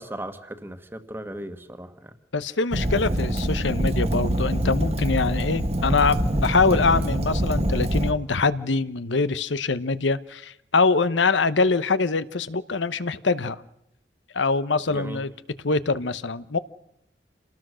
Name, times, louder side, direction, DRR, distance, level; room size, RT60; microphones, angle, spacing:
voice 1, 0.0-2.2 14.9-15.2, right 1 dB, 10° right, 9 dB, 1.5 m, -37 dB
voice 2, 2.3-13.6 14.3-15.3 15.6-16.6, left 4 dB, 85° left, 14 dB, 1.0 m, -24 dB
Fire, 2.7-8.1, equal, 35° right, 1.4 m, -25 dB
28.0 x 19.0 x 6.3 m, 0.81 s
head